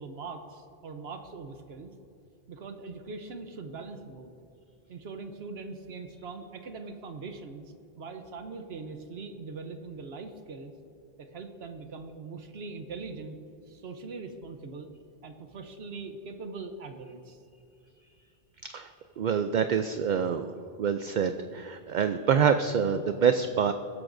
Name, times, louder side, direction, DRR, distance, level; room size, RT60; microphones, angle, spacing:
voice 1, 0.0-1.9 2.5-4.3 4.9-10.7 11.2-13.4 13.6-14.9 15.2-17.4, right 4 dB, 75° right, 6 dB, 1.1 m, -41 dB
voice 2, 19.2-20.5 20.8-23.7, right 7 dB, 55° right, 8 dB, 0.6 m, -26 dB
20.5 x 11.0 x 2.6 m, 2.5 s
omnidirectional pair, 1.1 m